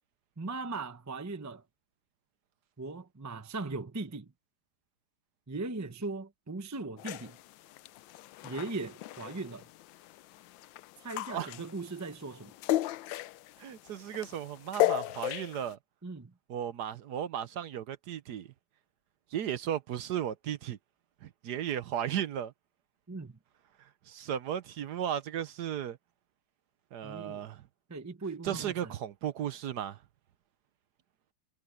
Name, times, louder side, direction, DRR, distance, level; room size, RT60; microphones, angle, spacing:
voice 1, 0.4-1.6 2.8-4.3 5.5-7.4 8.4-9.7 11.0-12.5 16.0-16.3 23.1-23.4 27.0-27.5 27.9-28.9, right 3 dB, 20° right, 0.5 m, -39 dB
sound 1, 7.0-15.7, left 15 dB, 85° left, 1.3 m, -36 dB
voice 2, 13.6-15.8 16.5-18.5 19.3-20.8 21.2-22.5 24.1-26.0 26.9-27.6 28.4-30.0, right 10 dB, 65° right, 1.3 m, -35 dB
omnidirectional pair, 2.0 m